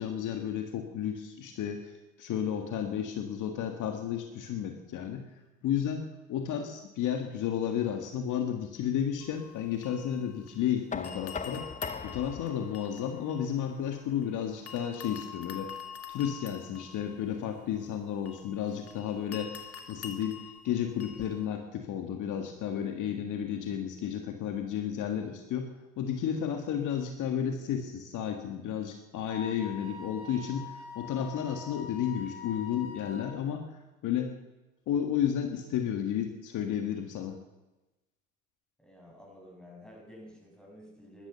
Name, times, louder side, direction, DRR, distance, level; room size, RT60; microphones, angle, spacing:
voice 1, 0.0-5.3 5.6-11.7 12.0-15.7 16.1-33.7 34.0-34.3 34.9-37.4, left 9 dB, 60° left, 5 dB, 1.8 m, -32 dB
sound 1, 9.2-10.7 11.0-14.3 14.7-21.5, left 7 dB, 45° left, 2.2 m, -46 dB
Knock, 10.9-16.7, left 5 dB, 20° left, 1.1 m, -43 dB
Wind instrument woodwind instrument, 29.3-33.3, left 4 dB, 80° left, 3.1 m, -44 dB
voice 2, 38.8-41.3, equal, ahead, -1 dB, 7.1 m, -51 dB
13.5 x 12.5 x 7.0 m, 1.0 s
hypercardioid pair, 70°, 35 cm